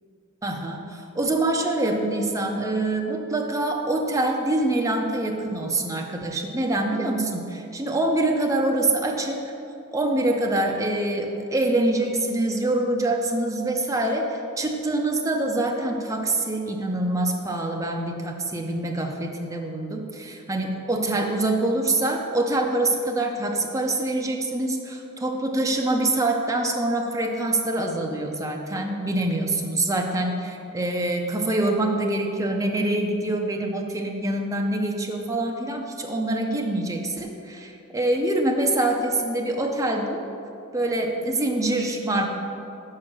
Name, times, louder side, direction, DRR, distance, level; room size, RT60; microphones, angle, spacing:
voice 1, 0.4-9.4 9.9-40.2 40.7-42.3, right 2 dB, 15° right, 2 dB, 0.6 m, -25 dB
6.5 x 5.2 x 6.0 m, 2.6 s
head